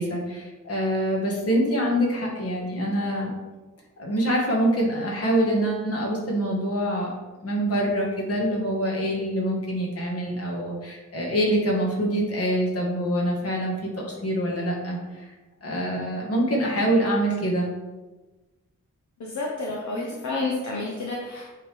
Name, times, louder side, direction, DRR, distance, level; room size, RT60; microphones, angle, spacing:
voice 1, 0.0-3.3 4.0-7.1 7.4-15.3 15.6-17.7 19.9-20.1, equal, 50° left, -2 dB, 1.9 m, -25 dB
voice 2, 19.2-21.5, left 3 dB, 65° left, -2 dB, 1.1 m, -30 dB
8.4 x 5.2 x 3.5 m, 1.2 s
wide cardioid pair, 170°, 31 cm